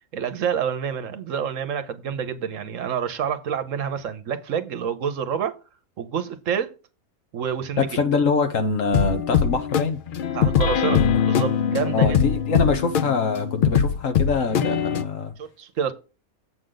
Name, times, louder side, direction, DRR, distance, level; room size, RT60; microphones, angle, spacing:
voice 1, 0.1-5.6 6.0-6.7 7.3-7.8 10.3-12.2 15.4-15.9, right 7 dB, 65° right, 1.1 m, -28 dB
voice 2, 7.8-10.0 11.8-15.3, left 4 dB, 65° left, 1.4 m, -24 dB
sound 1, 8.9-15.0, left 7 dB, 90° left, 0.4 m, -21 dB
7.8 x 6.4 x 3.9 m
omnidirectional pair, 1.5 m